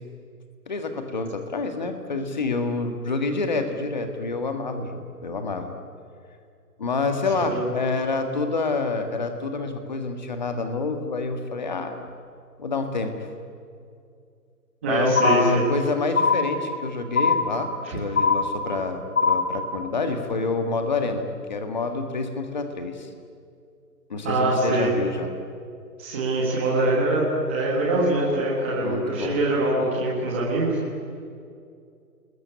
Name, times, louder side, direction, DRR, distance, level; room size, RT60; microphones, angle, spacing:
voice 1, 0.7-5.7 6.8-12.0 12.6-13.3 14.9-23.1 24.1-25.3 28.8-29.4, left 3 dB, 25° left, 6 dB, 1.8 m, -28 dB
voice 2, 7.3-7.7 14.8-15.6 24.2-24.9 26.0-30.8, right 2 dB, 10° right, -5 dB, 1.5 m, -23 dB
sound 1, 15.2-15.8 16.2-16.8 17.2-17.8 18.2-18.8 19.2-19.8, left 4 dB, 50° left, 5.2 m, -22 dB
30.0 x 21.0 x 9.7 m, 2.4 s
hypercardioid pair, 175°, 48 cm